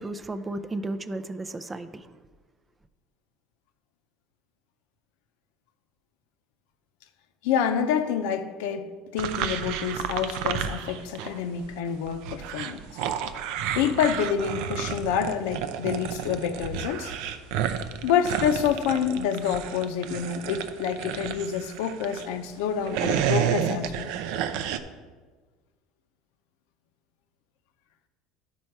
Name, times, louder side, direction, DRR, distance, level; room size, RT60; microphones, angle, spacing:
voice 1, 0.0-2.1, right 2 dB, 15° right, 0.4 m, -34 dB
voice 2, 7.4-12.8 13.7-17.1 18.0-24.1, left 8 dB, 80° left, 0.7 m, -27 dB
sound 1, 9.2-11.4 11.6-22.3 22.7-24.8, right 9 dB, 75° right, 0.5 m, -31 dB
11.5 x 4.3 x 4.6 m
supercardioid pair, 120°, 0 cm